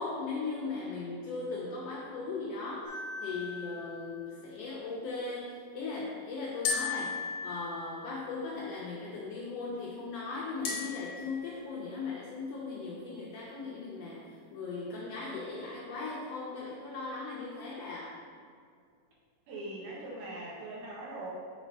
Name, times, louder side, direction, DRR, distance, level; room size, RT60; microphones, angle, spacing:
voice 1, 0.0-18.1, left 3 dB, 85° left, -5 dB, 1.4 m, -38 dB
sound 1, 2.8-4.3 6.6-8.3 10.6-11.7, left 4 dB, 65° left, 2.3 m, -37 dB
voice 2, 19.5-21.3, right 2 dB, 80° right, -5 dB, 2.9 m, -41 dB
6.3 x 3.3 x 5.2 m, 2.1 s
omnidirectional pair, 3.7 m